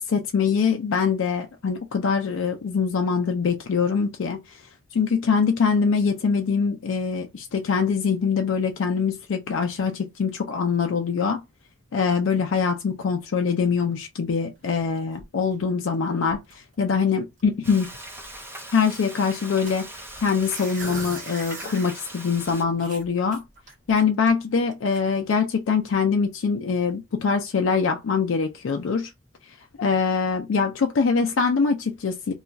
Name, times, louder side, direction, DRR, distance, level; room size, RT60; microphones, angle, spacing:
voice 1, 0.0-4.6 4.9-11.4 11.9-17.9 18.7-19.9 20.2-23.4 23.9-29.1 29.5-32.3, left 5 dB, 80° left, 0.4 m, -23 dB
sound 1, 14.6-16.0 16.2-16.7 17.1-17.2 17.4-17.6 17.9-19.1 19.7-22.0 22.4-22.5 22.8-24.3 24.7-25.0, right 2 dB, 40° right, 1.1 m, -41 dB
Frying (food), 17.6-22.6, right 1 dB, 10° right, 0.7 m, -40 dB
2.3 x 2.3 x 3.9 m
head